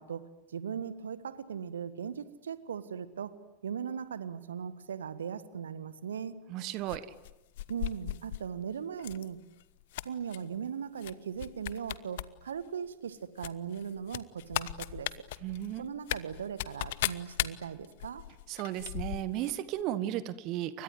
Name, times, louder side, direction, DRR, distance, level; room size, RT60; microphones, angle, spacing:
voice 1, 0.0-3.4 3.6-6.4 7.7-9.4 10.0-15.1 15.8-18.2, right 7 dB, 65° right, 15 dB, 1.6 m, -39 dB
voice 2, 6.5-7.1 15.4-15.8 18.5-20.8, right 13 dB, 40° right, 16 dB, 1.4 m, -34 dB
sound 1, 6.9-8.5 9.0-9.3 9.6-10.4 11.0-11.1 11.4-12.3 12.6-12.7 13.4-19.5 19.8-19.9, left 15 dB, 55° left, 1.1 m, -37 dB
29.5 x 24.5 x 7.9 m, 1.0 s
figure-of-eight pair, 90°, 0 cm